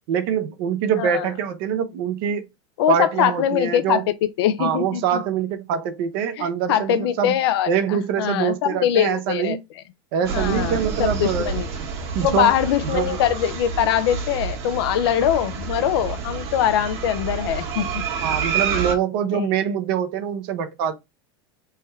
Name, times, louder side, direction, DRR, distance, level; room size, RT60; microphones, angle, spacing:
voice 1, 0.1-2.5 2.9-4.0 4.6-7.3 7.7-9.6 10.1-11.5 12.1-12.5 12.8-13.2 18.2-20.9, right 8 dB, 65° right, 0.8 m, -24 dB
voice 2, 2.8-5.2 6.4-9.6 10.3-11.7 12.2-18.0 18.7-18.8 19.3-19.5, left 10 dB, 75° left, 0.5 m, -22 dB
sound 1, 10.2-18.9, right 6 dB, 50° right, 1.2 m, -28 dB
3.5 x 2.2 x 4.3 m
supercardioid pair, 115°, 13 cm